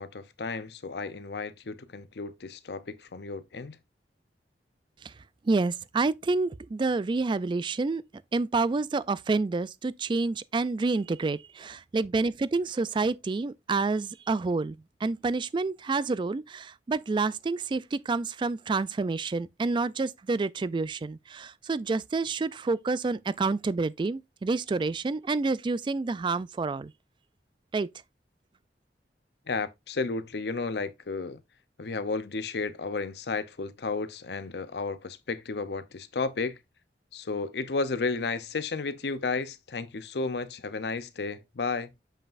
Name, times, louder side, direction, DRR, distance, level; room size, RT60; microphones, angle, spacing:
voice 1, 0.0-3.8 29.5-31.4 31.8-36.6 37.1-41.9, left 4 dB, 65° left, 0.6 m, -33 dB
voice 2, 5.4-8.0 8.3-26.9 27.7-27.9, right 3 dB, 25° right, 0.3 m, -28 dB
7.2 x 5.5 x 2.5 m
head